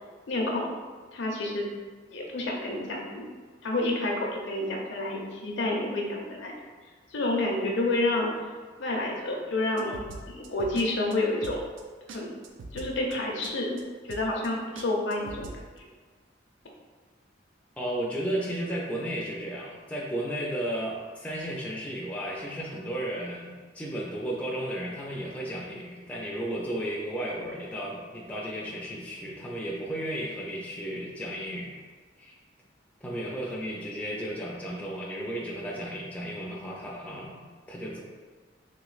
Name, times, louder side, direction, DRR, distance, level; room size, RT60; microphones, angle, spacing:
voice 1, 0.3-0.7 1.1-1.7 2.1-3.3 3.6-6.5 7.1-8.3 8.8-10.0 10.3-11.6 12.1-12.3 12.7-13.8 14.1-15.5, left 2 dB, 75° left, -1 dB, 0.6 m, -29 dB
sound 1, 9.8-10.9 11.1-11.2 11.4-11.8 12.1-12.2 12.4-13.1 13.4-13.5 13.8-13.9 14.1-14.5 14.8-15.6, right 3 dB, 85° right, 0.4 m, -42 dB
voice 2, 17.8-31.8 32.2-32.4 33.0-38.0, right 1 dB, 5° left, -4 dB, 0.3 m, -34 dB
3.1 x 3.0 x 2.4 m, 1.5 s
head